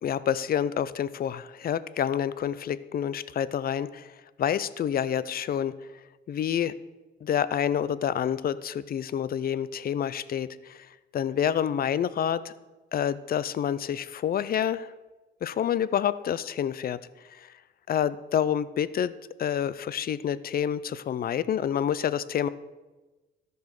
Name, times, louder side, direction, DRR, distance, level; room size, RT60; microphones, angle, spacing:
voice 1, 0.0-4.1 4.4-5.7 6.3-6.7 7.2-10.9 11.1-12.5 12.9-14.9 15.4-17.0 17.3-17.5 17.9-19.1 19.4-22.5, left 9 dB, 50° left, 17 dB, 0.5 m, -28 dB
13.5 x 5.5 x 6.5 m, 1.2 s
cardioid pair, 90°, 20 cm